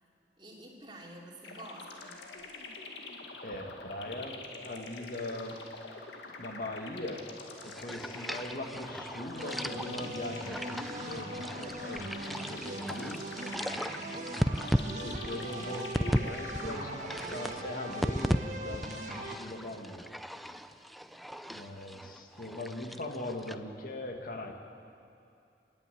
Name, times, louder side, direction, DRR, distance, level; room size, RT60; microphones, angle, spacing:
voice 1, 0.4-2.2 15.2-15.7, right 1 dB, 25° right, -2 dB, 2.9 m, -49 dB
sound 1, 1.4-17.8, left 3 dB, 85° left, 2.1 m, -45 dB
voice 2, 3.4-5.6 6.4-7.3 7.6-13.3 14.8-20.1 21.5-24.5, left 1 dB, 50° left, 3 dB, 2.0 m, -40 dB
sound 2, 7.6-16.3 16.5-18.4 18.7-23.6, equal, ahead, 0.4 m, -36 dB
sound 3, 9.4-19.4, right 1 dB, 45° right, 1.7 m, -41 dB
26.0 x 10.5 x 9.3 m, 2.7 s
head